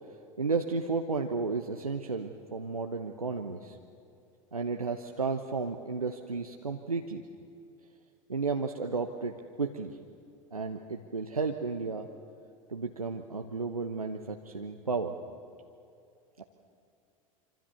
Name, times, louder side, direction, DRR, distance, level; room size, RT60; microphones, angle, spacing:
voice 1, 0.4-3.8 4.5-7.2 8.3-10.0 10.5-12.1 12.7-15.2 16.4-16.5, right 4 dB, 85° right, 3 dB, 1.0 m, -33 dB
25.5 x 25.5 x 7.1 m, 2.5 s
figure-of-eight pair, 85°, 18 cm